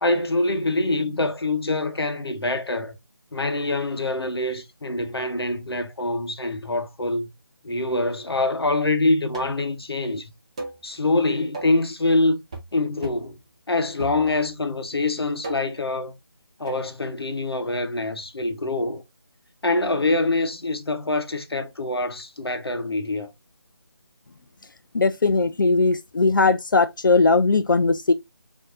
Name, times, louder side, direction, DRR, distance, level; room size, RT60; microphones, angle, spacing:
voice 1, 0.0-3.0 3.3-7.3 7.6-10.3 10.8-12.4 12.7-13.4 13.7-16.1 16.6-19.0 19.6-23.3, left 2 dB, 80° left, 0.8 m, -25 dB
sound 1, 9.3-9.7 10.6-10.8 11.5-11.8 12.5-12.8 13.0-13.3 14.0-14.6 15.4-15.8 16.7-16.9, right 2 dB, 15° right, 0.4 m, -37 dB
voice 2, 24.9-28.1, left 3 dB, 55° left, 0.4 m, -19 dB
4.5 x 2.7 x 2.6 m
figure-of-eight pair, 160°, 13 cm